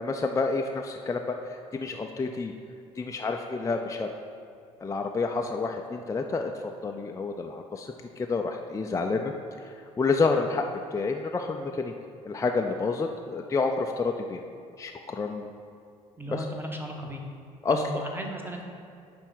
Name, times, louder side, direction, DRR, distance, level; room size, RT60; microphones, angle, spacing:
voice 1, 0.0-2.5 3.0-4.1 4.8-6.5 6.8-9.3 9.6-11.9 12.3-14.4 14.8-15.5 16.3-16.5 17.6-17.8, left 4 dB, 15° left, 3 dB, 0.5 m, -29 dB
voice 2, 16.2-17.2 17.7-18.6, right 1 dB, 10° right, 1 dB, 1.3 m, -35 dB
9.7 x 3.5 x 6.1 m, 2.3 s
figure-of-eight pair, 55°, 18 cm